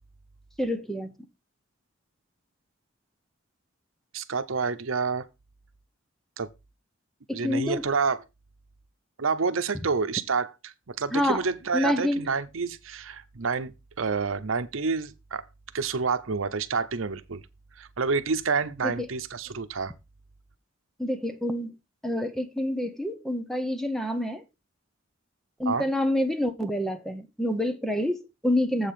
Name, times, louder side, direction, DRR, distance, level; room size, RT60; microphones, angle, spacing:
voice 1, 0.6-1.1 7.3-7.8 11.1-11.4 11.7-12.3 18.8-19.1 21.0-21.7 22.0-24.4 25.6-28.9, left 1 dB, ahead, 0.8 m, -27 dB
voice 2, 4.1-5.2 6.4-6.5 7.3-8.2 9.2-13.7 14.0-15.4 15.7-17.4 17.8-19.9 25.7-25.8, right 5 dB, 85° right, 0.8 m, -28 dB
7.8 x 5.1 x 5.7 m
head